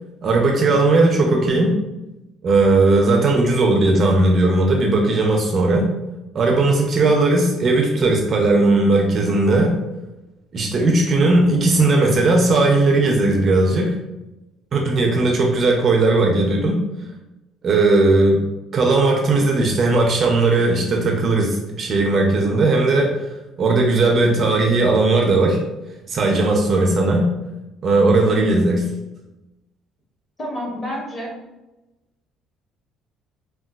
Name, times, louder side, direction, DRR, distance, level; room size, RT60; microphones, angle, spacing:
voice 1, 0.2-1.8 2.4-5.9 6.3-9.8 10.5-14.0 14.7-16.8 17.6-18.5 18.7-23.3 23.6-25.6 26.1-27.3 27.8-28.8, right 2 dB, 30° right, 1 dB, 0.4 m, -17 dB
voice 2, 28.2-28.6 30.4-31.3, left 1 dB, 25° left, -2 dB, 0.8 m, -28 dB
3.8 x 2.1 x 2.2 m, 1.0 s
cardioid pair, 170°, 0 cm